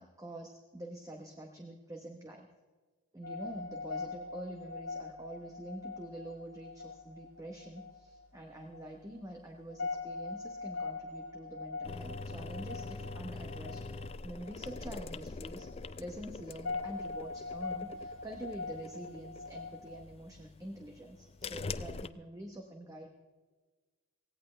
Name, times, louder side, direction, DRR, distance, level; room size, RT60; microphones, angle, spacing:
voice 1, 0.0-2.5 3.1-15.7 16.0-23.2, right 1 dB, 15° right, 2 dB, 1.0 m, -46 dB
sound 1, 3.2-20.0, left 3 dB, 80° left, 1.5 m, -43 dB
sound 2, 11.8-22.1, left 3 dB, 25° left, 0.3 m, -44 dB
17.0 x 17.0 x 3.3 m, 1.3 s
head